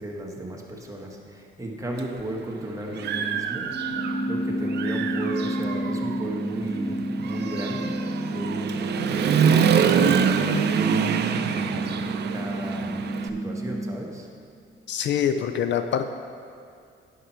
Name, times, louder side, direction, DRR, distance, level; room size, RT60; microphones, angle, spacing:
voice 1, 0.0-3.7 4.3-7.9 8.3-10.7 11.5-14.3, right 1 dB, 15° right, -1 dB, 1.4 m, -35 dB
Human voice / Motorcycle, 2.0-2.1 2.6-4.3 4.7-13.3, right 7 dB, 60° right, 0.5 m, -25 dB
Keyboard (musical), 3.7-9.6, left 1 dB, 10° left, 1.2 m, -33 dB
sound 1, 3.9-13.9, right 2 dB, 90° left, 2.0 m, -32 dB
voice 2, 14.9-16.1, left 8 dB, 65° left, 9 dB, 0.5 m, -24 dB
9.9 x 5.9 x 4.5 m, 2.4 s
cardioid pair, 90°, 20 cm